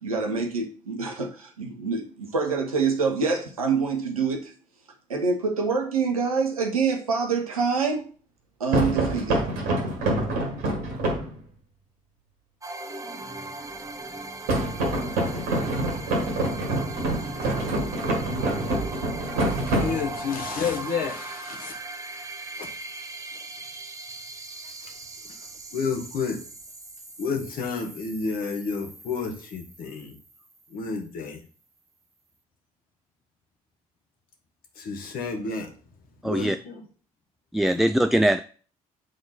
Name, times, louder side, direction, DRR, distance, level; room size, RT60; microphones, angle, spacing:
voice 1, 0.0-4.5 5.1-8.0 8.6-9.4, right 5 dB, 80° right, 4 dB, 1.0 m, -26 dB
sound 1, 8.7-11.4 14.5-20.4, right 1 dB, 65° right, 1.6 m, -26 dB
sound 2, 12.6-31.1, right 2 dB, 20° right, 1.0 m, -39 dB
voice 2, 19.4-21.7 22.6-22.7 25.7-26.4 27.2-30.1 30.7-31.4 34.8-35.7 36.2-36.8, left 5 dB, 55° left, 4 dB, 1.4 m, -30 dB
voice 3, 36.2-36.6 37.5-38.4, right 1 dB, ahead, 10 dB, 0.3 m, -21 dB
7.8 x 3.8 x 4.1 m, 0.41 s
figure-of-eight pair, 45°, 18 cm